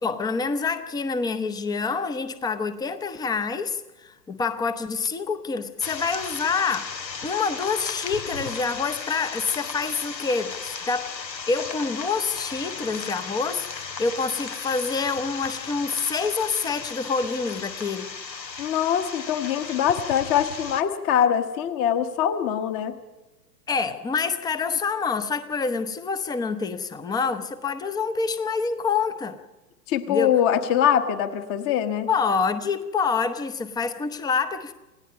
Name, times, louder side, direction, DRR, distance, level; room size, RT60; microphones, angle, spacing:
voice 1, 0.0-7.0 7.2-11.1 11.5-18.1 23.7-29.4 30.1-30.3 32.1-34.7, left 5 dB, 10° left, 12 dB, 0.7 m, -27 dB
sound 1, 5.8-20.8, left 5 dB, 85° left, 1.4 m, -35 dB
voice 2, 18.6-22.9 29.9-32.1, left 9 dB, 25° left, 10 dB, 1.2 m, -23 dB
28.5 x 17.5 x 5.4 m, 1.1 s
figure-of-eight pair, 110°, 50 cm